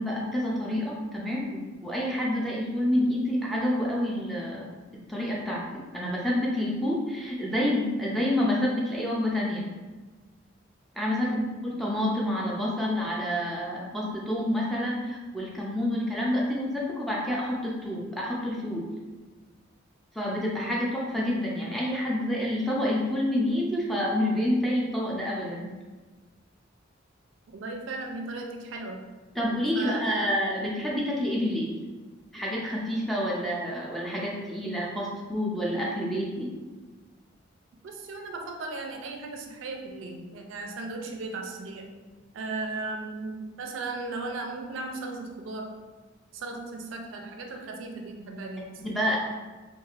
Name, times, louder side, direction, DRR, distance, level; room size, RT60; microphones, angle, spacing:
voice 1, 0.0-4.8 5.1-5.6 5.9-9.7 11.0-11.4 11.6-18.9 20.1-25.7 29.4-31.7 32.3-36.5 48.8-49.2, left 1 dB, ahead, -4 dB, 0.4 m, -28 dB
voice 2, 11.1-11.5 20.6-20.8 27.5-29.0 29.7-30.3 37.8-42.0 42.3-45.8 46.3-48.8, right 3 dB, 80° right, 3 dB, 0.4 m, -36 dB
3.2 x 2.4 x 2.4 m, 1.3 s
head